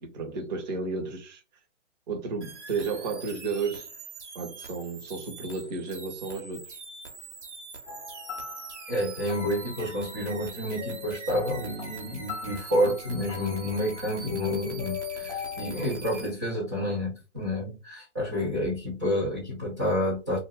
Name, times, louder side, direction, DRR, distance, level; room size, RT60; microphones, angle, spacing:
voice 1, 0.0-1.4 2.1-3.9 4.3-6.8, right 4 dB, 35° right, 0.7 m, -33 dB
sound 1, 2.4-16.3, right 4 dB, 70° right, 0.9 m, -43 dB
sound 2, 7.9-15.7, left 8 dB, 30° left, 0.6 m, -40 dB
voice 2, 8.9-20.4, equal, 15° right, 0.3 m, -29 dB
2.2 x 2.0 x 3.4 m
figure-of-eight pair, 125°, 36 cm